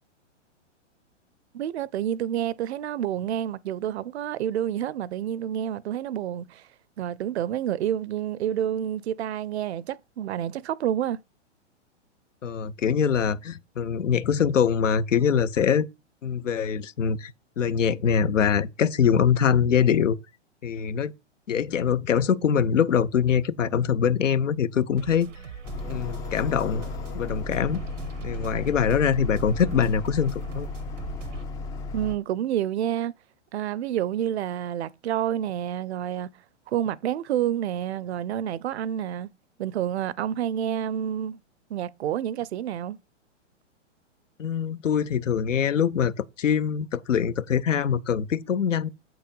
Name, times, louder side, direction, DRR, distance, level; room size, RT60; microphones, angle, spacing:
voice 1, 1.5-6.7 7.0-11.2 31.9-33.1 33.5-36.3 36.7-39.3 39.6-41.4 41.7-43.0, right 10 dB, 60° right, 0.6 m, -28 dB
voice 2, 12.4-15.9 16.2-20.2 20.6-21.1 21.5-25.3 25.9-26.8 27.1-27.8 28.2-30.7 44.4-48.9, left 7 dB, 85° left, 0.8 m, -23 dB
sound 1, 25.0-31.4, right 6 dB, 85° right, 1.1 m, -41 dB
sound 2, 25.6-32.2, left 3 dB, 10° left, 0.3 m, -35 dB
7.6 x 4.8 x 5.2 m
hypercardioid pair, 120°, 37 cm